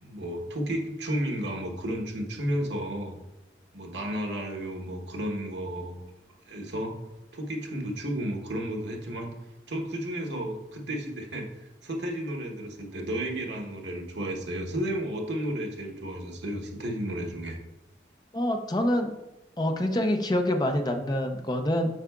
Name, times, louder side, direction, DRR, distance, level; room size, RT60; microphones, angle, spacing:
voice 1, 0.0-3.1 3.7-6.0 6.5-6.9 7.3-9.3 9.7-17.6, right 1 dB, 85° right, 1 dB, 1.1 m, -32 dB
voice 2, 18.3-19.1 19.6-21.9, left 1 dB, 25° left, 5 dB, 0.5 m, -26 dB
7.3 x 5.6 x 2.3 m, 0.95 s
head